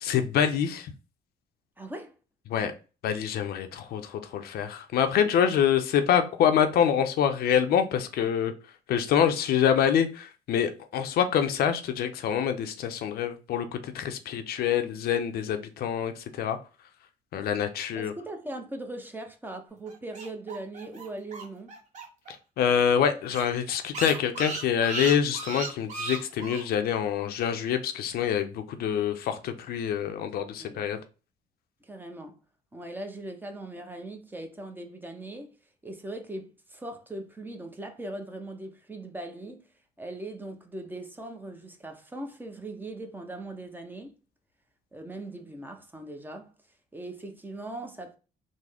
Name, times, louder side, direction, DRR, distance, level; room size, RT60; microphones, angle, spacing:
voice 1, 0.0-0.9 2.5-2.7 3.0-8.5 8.9-16.6 17.3-18.1 22.6-31.0, left 8 dB, 70° left, 0.5 m, -26 dB
voice 2, 1.8-2.1 18.1-21.7 30.6-30.8 31.8-32.4 32.7-35.6 35.8-39.6 40.0-44.1 44.9-46.5 46.9-48.2, right 2 dB, 10° right, 0.6 m, -40 dB
sound 1, 19.9-22.3 22.6-22.7 23.0-23.1 23.3-26.6, right 3 dB, 45° right, 1.2 m, -35 dB
3.6 x 2.0 x 3.3 m
cardioid pair, 95°, 16 cm